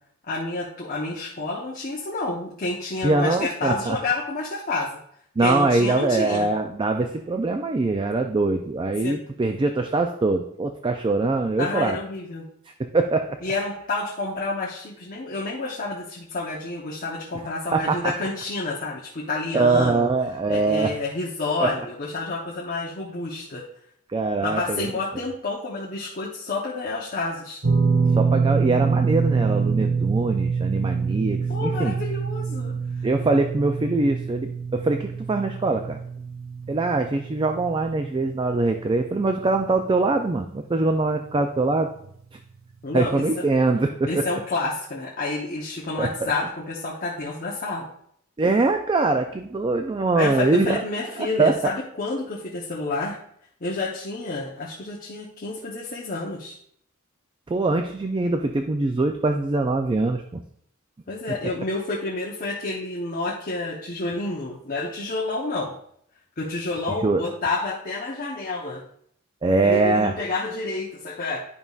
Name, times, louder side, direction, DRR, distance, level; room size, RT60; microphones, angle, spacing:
voice 1, 0.3-4.9 5.4-6.5 9.0-9.2 11.6-12.4 13.4-20.1 20.5-23.6 24.4-27.6 31.5-32.7 42.8-43.4 44.1-47.9 50.2-53.2 53.6-56.6 61.1-65.7 66.4-68.8 69.6-71.4, left 3 dB, 45° left, -4 dB, 0.9 m, -29 dB
voice 2, 3.0-4.0 5.4-12.0 12.8-13.4 17.7-18.1 19.5-20.9 21.6-21.9 24.1-24.9 28.2-32.0 33.0-36.0 36.7-41.9 42.9-44.3 46.0-46.3 48.4-50.8 51.2-51.7 57.5-60.4 67.0-67.2 69.4-70.1, right 3 dB, 25° right, 6 dB, 0.4 m, -23 dB
sound 1, 27.6-39.9 40.1-40.4 42.0-42.1, right 5 dB, 80° right, 1.1 m, -25 dB
11.0 x 5.3 x 2.4 m, 0.68 s
head